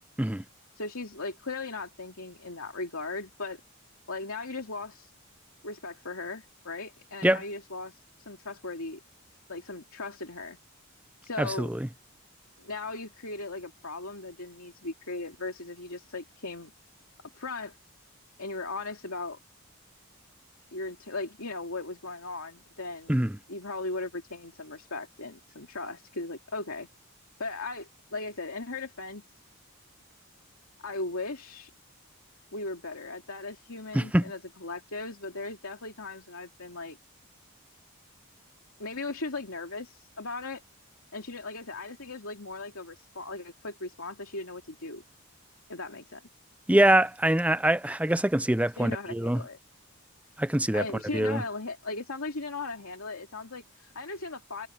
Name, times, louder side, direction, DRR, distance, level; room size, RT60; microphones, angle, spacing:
voice 1, 0.8-3.6 4.1-5.1 5.6-8.0 8.3-9.0 9.5-10.6 11.2-11.7 12.6-16.7 17.3-17.8 18.4-19.4 20.7-23.1 23.5-26.9 27.4-29.2 30.8-31.7 32.5-37.0 38.8-40.6 41.1-45.0 45.7-46.2 48.8-49.6 50.7-54.7, left 3 dB, 75° left, 2.7 m, -37 dB
voice 2, 11.4-11.9 23.1-23.4 33.9-34.2 46.7-49.4 50.4-50.9 51.1-51.4, right 1 dB, 5° right, 0.5 m, -24 dB
head